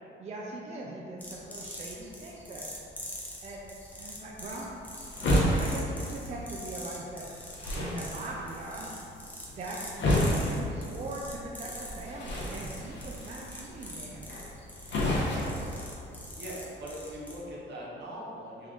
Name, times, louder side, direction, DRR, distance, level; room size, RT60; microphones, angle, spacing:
voice 1, 0.2-2.7 3.4-3.6 3.9-4.7 5.6-7.3 7.6-8.9 9.6-14.3, right 2 dB, 35° right, -3 dB, 0.4 m, -41 dB
sound 1, 1.2-17.4, equal, 10° left, 0.8 m, -44 dB
sound 2, 4.4-16.4, left 1 dB, 65° left, 0.8 m, -32 dB
voice 2, 15.2-15.8 16.4-18.7, equal, 60° right, -5 dB, 0.9 m, -41 dB
3.6 x 2.4 x 3.6 m, 2.6 s
cardioid pair, 90°, 20 cm